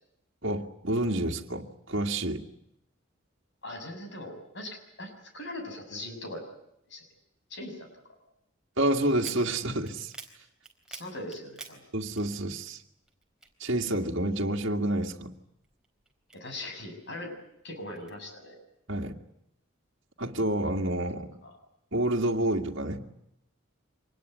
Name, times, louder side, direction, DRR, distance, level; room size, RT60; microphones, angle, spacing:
voice 1, 0.4-2.4 8.8-10.1 11.9-12.8 13.6-15.3 18.9-19.2 20.2-21.3 21.9-23.0, right 1 dB, 60° right, 0 dB, 2.1 m, -28 dB
voice 2, 3.6-6.4 6.9-7.0 7.5-7.9 10.9-11.8 16.3-17.3 17.6-18.5 21.4-21.5, left 1 dB, 60° left, 5 dB, 7.0 m, -40 dB
sound 1, 9.1-12.8 13.1-14.4 14.8-16.9 17.4-18.1, right 3 dB, 5° right, 4.0 m, -48 dB
25.5 x 20.5 x 9.2 m, 0.79 s
head